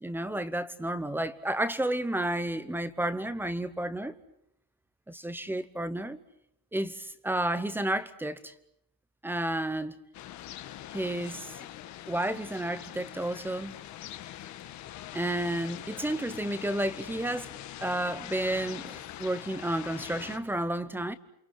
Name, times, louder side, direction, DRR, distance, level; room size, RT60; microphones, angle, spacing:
voice 1, 0.0-4.1 5.1-6.2 6.7-8.5 9.2-10.0 10.9-11.6 12.1-13.7 15.1-17.5 17.8-21.1, right 1 dB, 5° right, 0.9 m, -31 dB
sound 1, 10.1-20.4, left 13 dB, 45° left, 1.6 m, -43 dB
29.0 x 27.0 x 6.3 m
cardioid pair, 175°, 40 cm